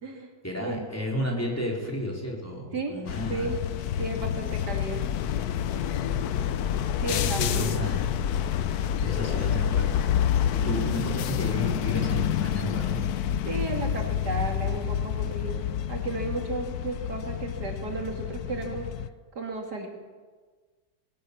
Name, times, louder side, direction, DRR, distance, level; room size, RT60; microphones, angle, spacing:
voice 1, 0.4-3.5 7.1-8.0 9.0-10.0 10.5-13.0, left 1 dB, 10° left, -2 dB, 4.5 m, -32 dB
sound 1, 3.1-19.1, left 9 dB, 65° left, 1.2 m, -28 dB
voice 2, 4.0-5.0 7.0-7.7 10.6-11.3 13.4-18.9 19.3-19.9, right 3 dB, 70° right, 2 dB, 3.0 m, -34 dB
21.0 x 17.5 x 7.1 m, 1.5 s
omnidirectional pair, 1.8 m